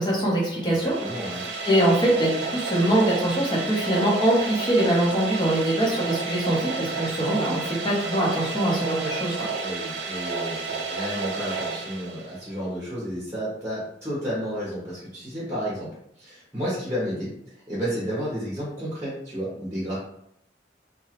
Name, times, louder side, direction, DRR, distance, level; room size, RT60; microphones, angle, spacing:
voice 1, 0.0-1.3 1.6-9.5, right 1 dB, 25° left, -4 dB, 0.8 m, -23 dB
voice 2, 0.6-1.4 9.6-15.9 16.2-17.3 17.7-20.0, equal, 15° right, -8 dB, 0.8 m, -31 dB
sound 1, 0.6-12.6, right 4 dB, 70° right, 0.4 m, -31 dB
2.9 x 2.2 x 2.9 m, 0.73 s
head